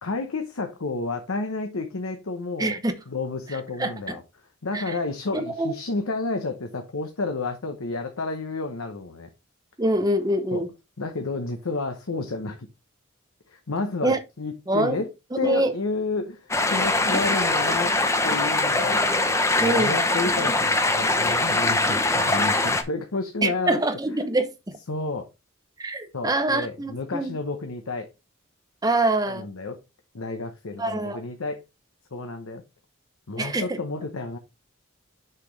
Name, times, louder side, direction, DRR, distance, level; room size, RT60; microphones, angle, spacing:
voice 1, 0.0-2.8 3.1-4.2 4.6-9.3 10.5-10.6 11.0-12.7 13.5-15.1 15.4-17.9 18.2-19.3 19.6-23.8 24.9-25.3 26.1-28.1 29.3-29.8 30.1-31.6 32.1-32.6 33.3-34.4, left 3 dB, 90° left, 0.9 m, -31 dB
voice 2, 2.6-3.0 3.8-4.2 4.7-4.8 5.3-5.7 9.8-10.7 14.0-14.2 14.7-15.0 15.4-15.7 19.6-19.9 23.4-24.8 25.8-27.4 28.8-29.5 30.8-31.2 33.4-33.8, right 2 dB, 20° right, 0.8 m, -25 dB
sound 1, 16.5-22.8, left 2 dB, 15° left, 0.7 m, -22 dB
6.6 x 5.8 x 3.2 m
head